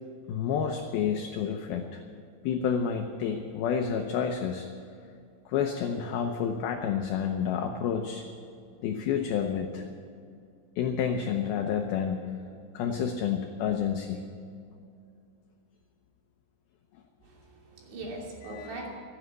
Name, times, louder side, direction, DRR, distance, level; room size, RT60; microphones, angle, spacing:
voice 1, 0.3-2.0 2.4-4.7 5.5-8.2 8.8-9.9 10.8-12.3 12.7-14.2 18.4-18.9, left 7 dB, 80° left, 4 dB, 2.1 m, -29 dB
voice 2, 17.2-18.9, right 2 dB, 65° right, -1 dB, 4.8 m, -41 dB
15.0 x 12.0 x 8.0 m, 2.4 s
omnidirectional pair, 5.4 m